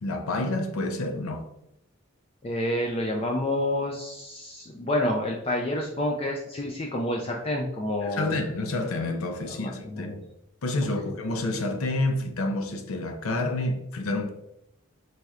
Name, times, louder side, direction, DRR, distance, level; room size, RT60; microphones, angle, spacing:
voice 1, 0.0-1.5 8.0-10.2 10.6-14.3, left 2 dB, 85° left, 0.5 m, -29 dB
voice 2, 2.4-8.3 9.5-10.2 11.0-11.1, left 1 dB, 25° left, 0.3 m, -29 dB
4.1 x 3.2 x 2.4 m
head